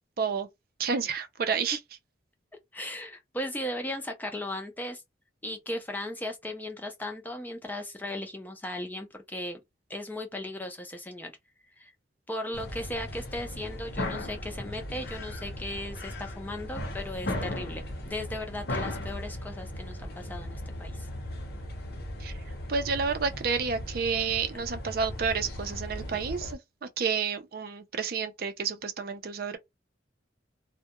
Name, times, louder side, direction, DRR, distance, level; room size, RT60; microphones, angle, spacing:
voice 1, 0.2-0.5 0.8-1.8 22.2-22.3 22.7-29.6, right 5 dB, 50° right, 0.4 m, -30 dB
voice 2, 2.7-5.0 5.4-9.6 9.9-11.3 11.8-11.9 12.3-21.1, left 1 dB, 10° left, 0.4 m, -37 dB
sound 1, 12.5-26.5, left 1 dB, 55° left, 0.8 m, -37 dB
2.2 x 2.1 x 2.8 m
head